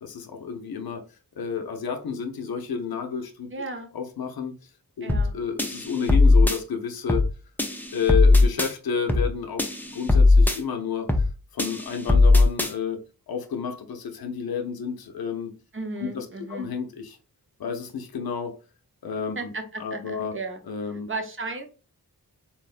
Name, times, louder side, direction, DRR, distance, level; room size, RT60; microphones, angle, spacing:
voice 1, 0.0-1.0 1.4-3.5 3.9-4.7 5.0-7.3 7.9-11.2 11.5-13.0 13.3-15.5 16.0-17.2 17.6-18.5 19.0-19.5 19.8-20.3 20.7-21.1, left 6 dB, 70° left, 0.6 m, -31 dB
voice 2, 3.5-3.9 5.0-5.3 15.7-16.7 19.4-20.6 20.9-21.7, right 3 dB, 35° right, 0.7 m, -35 dB
sound 1, 5.1-5.3 5.6-6.6 7.1-7.3 7.6-8.7 9.1-9.3 9.6-10.6 11.1-11.3 11.6-12.7, left 3 dB, 5° left, 0.4 m, -18 dB
3.9 x 2.1 x 2.4 m
cardioid pair, 60°, 38 cm